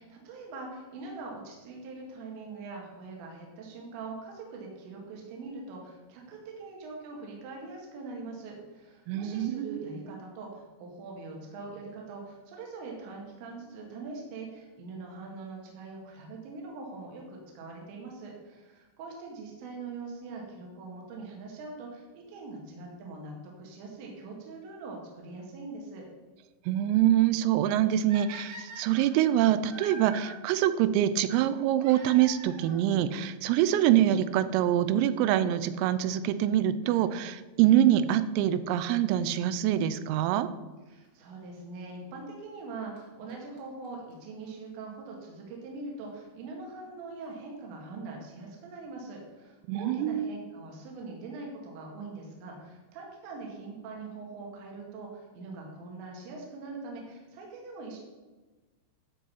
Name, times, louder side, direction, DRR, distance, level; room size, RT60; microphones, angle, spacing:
voice 1, 0.0-26.0 40.9-58.0, right 3 dB, 65° right, -1 dB, 3.8 m, -42 dB
voice 2, 9.1-9.9 26.7-40.5 49.7-50.3, right 11 dB, 85° right, 12 dB, 3.3 m, -25 dB
sound 1, 28.1-30.3 31.8-32.8 33.8-33.9 34.6-34.7 34.8-34.9 36.8-37.1 39.9-40.0 41.0-41.1 42.6-42.7 43.0-43.1 43.3-43.4 43.6-43.7 43.8-43.9 44.1-44.2 44.4-44.5, right 2 dB, 45° right, 1.6 m, -45 dB
13.0 x 4.9 x 5.7 m, 1.2 s
omnidirectional pair, 5.9 m